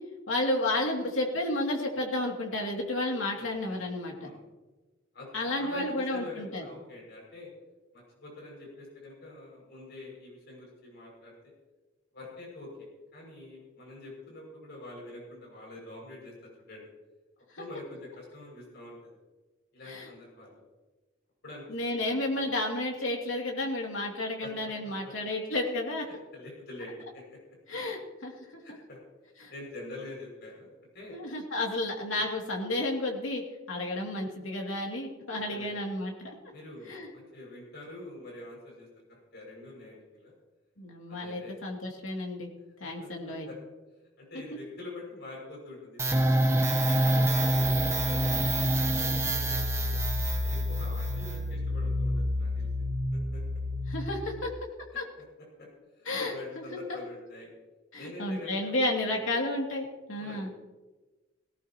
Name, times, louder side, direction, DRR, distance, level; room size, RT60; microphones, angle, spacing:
voice 1, 0.3-4.3 5.3-6.6 17.5-17.6 19.9-20.1 21.7-26.1 27.7-28.6 29.4-29.5 31.1-36.3 36.9-37.1 40.8-42.5 42.8-43.5 53.9-54.5 54.9-55.1 56.1-56.6 56.9-57.0 57.9-60.5, left 1 dB, 80° left, 0 dB, 2.6 m, -32 dB
voice 2, 3.3-3.8 4.1-4.4 5.1-7.5 7.9-11.5 12.1-16.3 16.7-16.9 17.6-19.2 19.7-20.6 21.4-21.7 22.0-22.5 24.4-25.1 26.3-27.4 28.6-29.0 29.5-31.2 32.1-32.3 35.5-35.8 36.5-40.3 41.1-41.6 42.8-43.6 44.2-46.5 46.8-50.0 50.4-52.7 53.3-53.4 55.6-55.7 56.0-57.5 58.0-58.8 59.1-59.3 60.1-60.6, left 2 dB, 55° left, -3 dB, 6.4 m, -46 dB
sound 1, 46.0-54.4, equal, 15° right, 1.1 m, -27 dB
18.0 x 18.0 x 3.0 m, 1.2 s
head